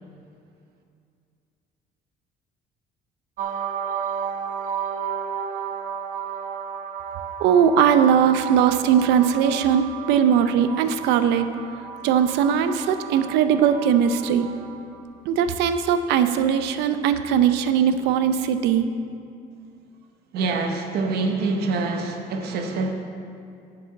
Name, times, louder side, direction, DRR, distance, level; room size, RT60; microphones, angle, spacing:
sound 1, 3.4-15.0, right 7 dB, 50° right, 0.8 m, -33 dB
voice 1, 7.4-11.5 12.0-14.5 15.2-18.9, right 8 dB, 90° right, 10 dB, 0.6 m, -20 dB
voice 2, 20.3-22.9, right 3 dB, 75° right, 4 dB, 1.0 m, -25 dB
7.8 x 6.2 x 7.0 m, 2.4 s
cardioid pair, 110°, 17 cm